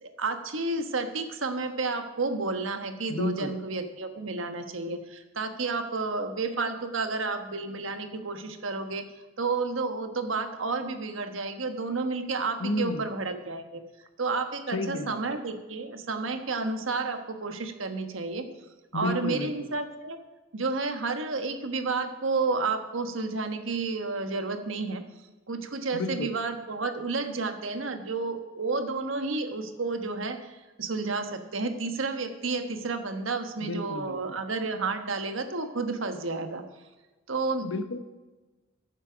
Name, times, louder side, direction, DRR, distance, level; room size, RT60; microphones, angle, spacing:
voice 1, 0.0-9.0 9.4-13.8 14.2-18.4 18.9-20.2 20.5-25.0 25.5-36.6 37.3-37.7, right 3 dB, 85° right, 7 dB, 1.3 m, -31 dB
voice 2, 3.1-3.5 12.6-13.1 14.7-15.2 18.9-19.7 25.9-26.3 33.6-34.4 37.6-38.0, left 2 dB, 80° left, 9 dB, 1.0 m, -31 dB
14.5 x 7.4 x 5.1 m, 1.2 s
head